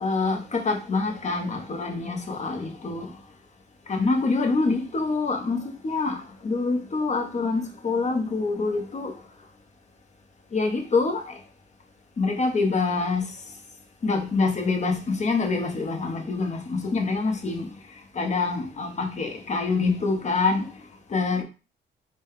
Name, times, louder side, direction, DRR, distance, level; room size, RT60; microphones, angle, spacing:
voice 1, 0.0-3.1 3.9-6.2 6.4-9.1 10.5-11.3 12.2-13.3 14.0-17.7 18.2-20.7 21.1-21.4, left 3 dB, 35° left, 0.9 m, -25 dB
4.1 x 2.2 x 3.6 m
cardioid pair, 90°, 20 cm